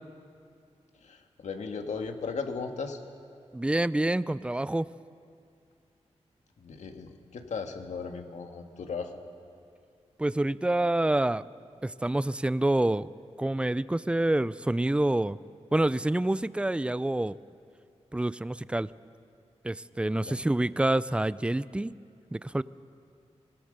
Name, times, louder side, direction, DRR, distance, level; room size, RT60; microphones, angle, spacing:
voice 1, 1.0-3.0 6.6-9.1 20.3-20.4, left 5 dB, 90° left, 4 dB, 1.8 m, -36 dB
voice 2, 3.5-4.9 10.2-11.4 11.8-13.1 13.4-15.4 15.7-17.4 18.1-18.9 19.6-21.9 22.3-22.6, right 1 dB, 10° right, 17 dB, 0.4 m, -27 dB
25.5 x 18.5 x 6.6 m, 2.4 s
wide cardioid pair, 105°, 12 cm